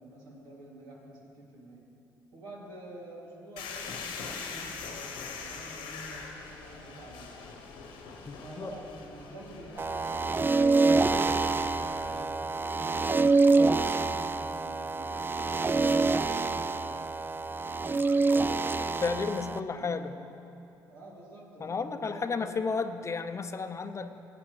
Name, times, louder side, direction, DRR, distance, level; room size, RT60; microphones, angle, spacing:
voice 1, 0.0-1.8 2.3-7.4 8.4-11.7 12.0-17.1 17.7-20.2 20.9-22.6, right 1 dB, 80° right, -5 dB, 2.7 m, -48 dB
sound 1, 3.6-12.2, left 5 dB, 85° left, 1.1 m, -43 dB
voice 2, 8.3-8.8 19.0-20.1 21.6-24.2, left 4 dB, 35° left, 8 dB, 0.6 m, -32 dB
sound 2, 9.8-19.6, right 3 dB, 25° right, 0.4 m, -26 dB
17.0 x 9.4 x 3.3 m, 2.8 s
supercardioid pair, 65°, 8 cm